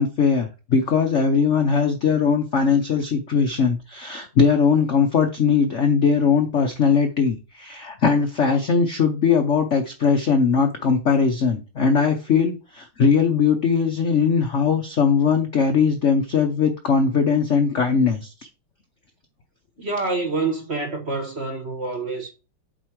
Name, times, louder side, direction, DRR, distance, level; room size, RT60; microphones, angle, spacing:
voice 1, 0.0-18.3, left 5 dB, 60° left, 0.7 m, -20 dB
voice 2, 19.8-22.3, right 3 dB, 40° right, 1.0 m, -27 dB
8.0 x 4.4 x 4.7 m
omnidirectional pair, 2.3 m